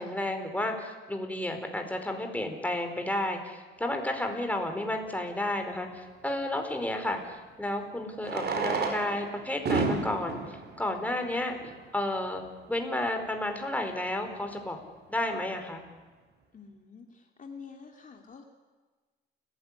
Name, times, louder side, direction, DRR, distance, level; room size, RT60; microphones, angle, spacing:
voice 1, 0.0-10.4 10.8-11.6 11.9-12.4 12.7-14.8 15.1-15.8, left 1 dB, 5° left, 5 dB, 4.7 m, -32 dB
Fireworks, 4.6-4.7 7.0-7.1 8.2-11.9 12.7-12.8 13.0-13.1 13.3-13.4 13.9-14.1, right 4 dB, 55° right, 5.1 m, -32 dB
voice 2, 16.5-17.0 17.4-18.4, left 5 dB, 40° left, 3 dB, 2.8 m, -47 dB
30.0 x 15.5 x 9.9 m, 1.3 s
cardioid pair, 90°, 20 cm